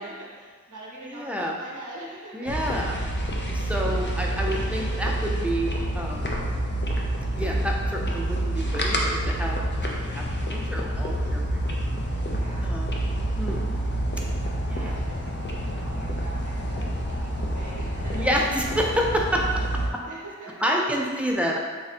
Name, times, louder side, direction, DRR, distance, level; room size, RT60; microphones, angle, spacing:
voice 1, 0.0-3.0 12.3-12.7 14.7-18.3 18.8-18.9 19.6-19.7 20.0-20.7, right 1 dB, 85° right, -5 dB, 0.9 m, -43 dB
voice 2, 1.0-1.5 2.3-2.9 3.5-6.3 7.4-9.6 10.1-11.7 12.6-12.9 13.4-13.7 14.7-15.0 18.1-19.4 20.6-21.6, equal, 5° right, -1 dB, 0.5 m, -28 dB
sound 1, 2.5-19.9, right 1 dB, 40° left, 0.6 m, -28 dB
3.5 x 2.6 x 4.1 m, 1.6 s
wide cardioid pair, 70°, 30 cm